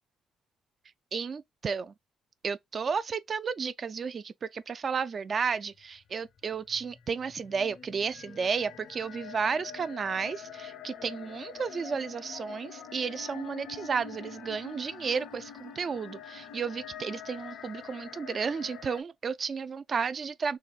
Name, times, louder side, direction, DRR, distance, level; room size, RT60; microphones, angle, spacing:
voice 1, 1.1-1.9 2.4-20.6, right 5 dB, 45° right, 0.3 m, -33 dB
sound 1, 6.4-19.0, left 8 dB, 75° left, 0.7 m, -46 dB
4.0 x 2.4 x 2.3 m
cardioid pair, 90°, 0 cm